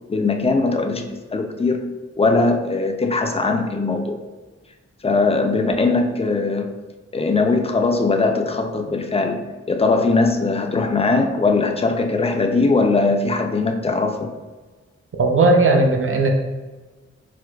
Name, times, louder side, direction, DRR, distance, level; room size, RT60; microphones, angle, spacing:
voice 1, 0.1-1.9 2.2-4.2 5.0-6.7 7.1-14.3, left 3 dB, 20° left, 5 dB, 0.4 m, -20 dB
voice 2, 15.2-16.3, right 2 dB, 45° right, 2 dB, 0.6 m, -16 dB
4.6 x 2.1 x 2.3 m, 1.3 s
cardioid pair, 45°, 29 cm